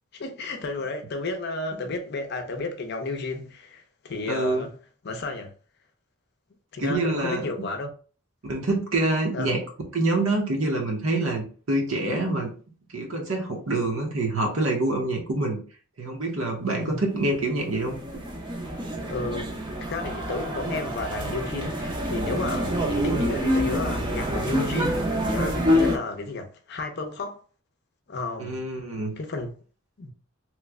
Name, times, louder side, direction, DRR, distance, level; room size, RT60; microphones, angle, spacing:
voice 1, 0.1-4.7 5.0-5.5 6.7-7.9 9.3-9.6 16.8-17.0 19.1-27.4 28.1-28.6 29.2-29.5 30.0-30.1, left 3 dB, 50° left, 0.5 m, -32 dB
voice 2, 4.3-4.7 6.8-7.5 8.4-9.6 9.9-12.5 12.9-15.6 16.0-18.0 28.4-29.1, right 2 dB, 70° right, 0.8 m, -26 dB
sound 1, 17.3-26.0, equal, 20° right, 0.5 m, -27 dB
3.0 x 2.1 x 3.5 m
head